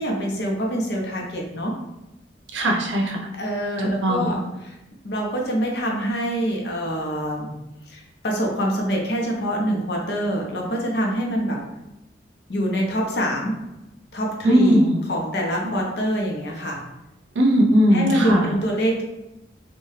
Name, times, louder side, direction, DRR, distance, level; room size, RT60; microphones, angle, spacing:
voice 1, 0.0-1.8 3.3-4.7 5.0-7.5 7.9-11.6 12.5-13.6 14.1-16.8 17.9-19.0, equal, 60° left, -1 dB, 0.6 m, -25 dB
voice 2, 2.5-3.2 3.8-4.4 14.4-15.0 17.4-18.5, equal, 85° right, 0 dB, 0.6 m, -19 dB
2.7 x 2.2 x 3.1 m, 0.96 s
head